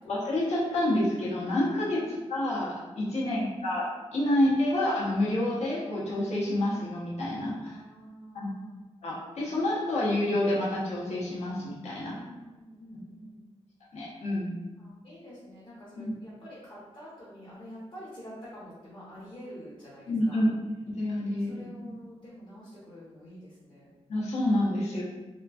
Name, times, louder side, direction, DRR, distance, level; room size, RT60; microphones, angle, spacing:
voice 1, 0.0-2.0 2.3-7.8 8.3-8.5 9.0-12.2 13.9-14.5 16.0-16.1 20.1-20.5 20.9-21.7 24.1-25.0, left 1 dB, 80° left, -6 dB, 0.8 m, -28 dB
voice 2, 7.6-8.9 12.1-13.4 14.8-20.5 21.4-23.9, equal, 45° left, -11 dB, 0.8 m, -47 dB
3.0 x 2.5 x 2.3 m, 1.2 s
wide cardioid pair, 175°, 11 cm